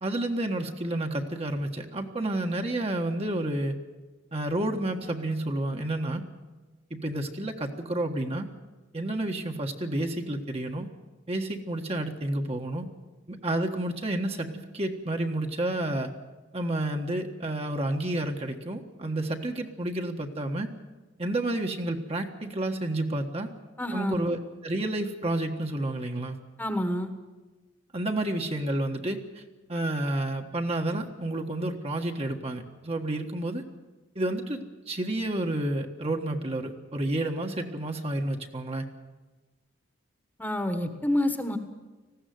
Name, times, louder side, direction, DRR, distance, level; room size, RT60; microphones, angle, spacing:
voice 1, 0.0-3.8 4.3-6.2 6.9-8.5 8.9-10.9 11.3-12.9 13.3-16.1 16.5-20.7 21.2-23.5 23.9-26.4 27.9-29.4 29.7-33.6 34.1-38.9, right 1 dB, 30° right, 3 dB, 1.6 m, -30 dB
voice 2, 23.8-24.1 26.6-27.1 40.4-41.6, left 1 dB, 10° left, 7 dB, 1.5 m, -28 dB
20.0 x 15.5 x 9.5 m, 1.2 s
head